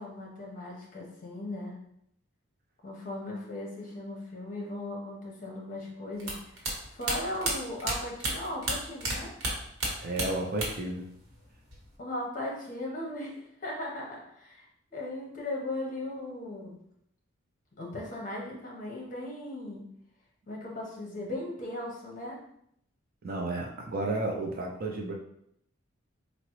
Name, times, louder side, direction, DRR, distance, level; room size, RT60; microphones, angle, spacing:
voice 1, 0.0-1.7 2.8-6.6 6.9-9.3 12.0-16.8 17.8-19.8 20.5-22.4, left 1 dB, 40° left, -2 dB, 0.8 m, -37 dB
sound 1, 6.2-9.1 9.4-10.9 11.2-11.9, right 2 dB, 80° right, 0.9 m, -32 dB
voice 2, 10.0-11.1 23.2-25.1, right 2 dB, 45° right, 1 dB, 0.4 m, -32 dB
3.6 x 2.0 x 3.0 m, 0.72 s
head